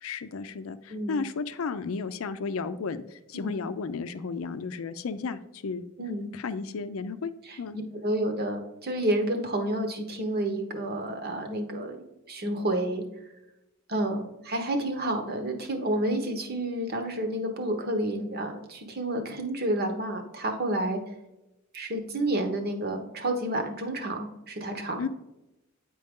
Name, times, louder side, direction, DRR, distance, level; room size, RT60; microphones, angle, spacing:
voice 1, 0.0-5.8 6.3-7.3 7.6-7.8 25.0-25.1, left 4 dB, 80° left, 12 dB, 0.5 m, -33 dB
voice 2, 0.9-1.2 3.3-3.5 6.0-6.3 7.4-7.6 8.0-13.0 13.9-21.0 21.7-25.0, right 1 dB, 45° right, 5 dB, 1.0 m, -30 dB
8.8 x 4.6 x 3.6 m, 0.93 s
head